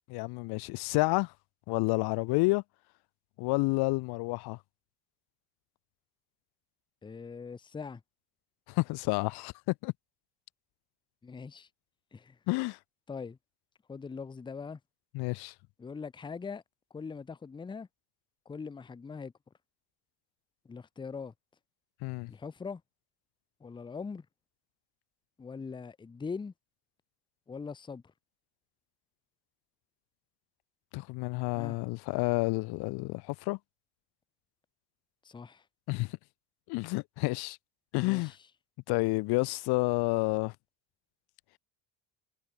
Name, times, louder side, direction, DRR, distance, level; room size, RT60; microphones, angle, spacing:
voice 1, 0.1-1.3 1.7-2.6 3.4-4.6 8.7-9.9 12.5-12.8 15.1-15.5 22.0-22.3 30.9-33.6 35.9-36.2 36.7-37.6 37.9-38.3 38.9-40.5, left 24 dB, 85° left, 1.1 m, -30 dB
voice 2, 7.0-8.0 11.2-11.7 12.1-12.4 13.1-13.4 13.9-14.8 15.8-16.6 16.9-17.9 18.5-19.3 20.6-21.3 22.3-22.8 23.6-24.3 25.4-26.5 27.5-28.0 31.6-31.8 35.2-35.6 38.0-38.4, left 5 dB, 10° left, 0.7 m, -41 dB
cardioid pair, 155°, 38 cm